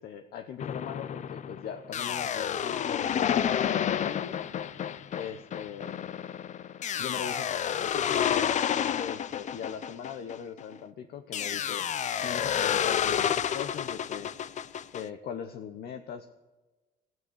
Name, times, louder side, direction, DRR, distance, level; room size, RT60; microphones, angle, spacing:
voice 1, 0.0-4.4 5.1-6.1 7.0-8.6 9.0-14.3 14.9-16.3, left 8 dB, 70° left, 8 dB, 1.0 m, -40 dB
sound 1, 0.6-10.7 11.3-15.0, left 9 dB, 45° left, 0.7 m, -30 dB
15.5 x 9.3 x 8.1 m, 1.2 s
cardioid pair, 110°, 17 cm